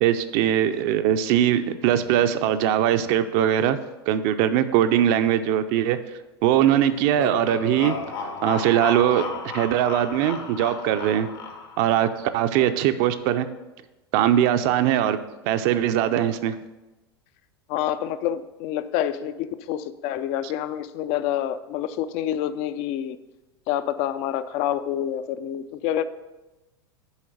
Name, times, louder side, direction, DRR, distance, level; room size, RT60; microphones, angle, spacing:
voice 1, 0.0-3.8 4.1-6.0 6.4-8.0 8.4-9.2 9.5-11.3 11.8-13.5 14.1-15.2 15.4-16.5, right 11 dB, 50° right, 10 dB, 0.6 m, -21 dB
sound 1, 6.8-11.9, left 4 dB, 65° left, 1.3 m, -34 dB
voice 2, 17.7-23.2 23.7-26.0, left 11 dB, 45° left, 13 dB, 0.5 m, -27 dB
7.1 x 4.5 x 6.5 m, 1.1 s
figure-of-eight pair, 90°, 14 cm